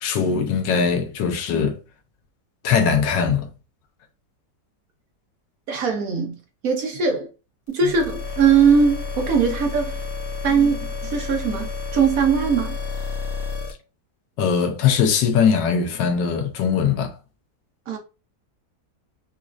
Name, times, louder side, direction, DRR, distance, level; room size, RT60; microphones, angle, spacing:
voice 1, 0.0-1.8 2.6-3.5 10.6-10.8 14.4-17.1, left 6 dB, 80° left, 1.4 m, -21 dB
voice 2, 5.7-6.4 6.6-7.3 7.7-10.0 10.4-10.8 11.0-12.8 17.9-18.0, right 6 dB, 65° right, 1.0 m, -20 dB
sound 1, 7.7-13.7, left 5 dB, 60° left, 1.2 m, -30 dB
5.1 x 2.4 x 2.4 m
omnidirectional pair, 1.9 m